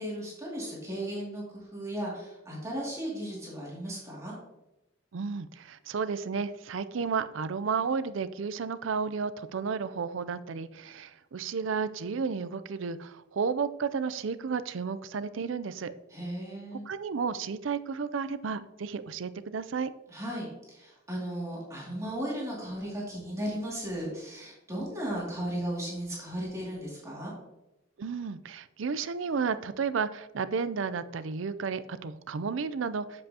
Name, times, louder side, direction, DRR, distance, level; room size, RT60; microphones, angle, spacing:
voice 1, 0.0-4.4 16.1-16.8 20.1-27.3, right 1 dB, 15° right, -5 dB, 2.3 m, -36 dB
voice 2, 5.1-15.9 16.9-19.9 28.0-33.3, right 5 dB, 80° right, 14 dB, 0.5 m, -32 dB
7.7 x 7.5 x 2.8 m, 0.95 s
head